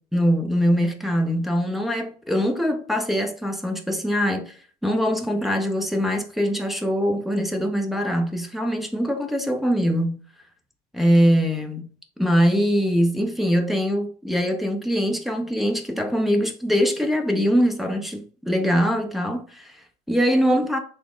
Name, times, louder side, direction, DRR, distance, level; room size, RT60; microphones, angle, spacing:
voice 1, 0.1-10.2 10.9-11.9 12.2-20.8, equal, ahead, 0.6 m, -22 dB
3.5 x 2.1 x 3.6 m
cardioid pair, 110°, 17 cm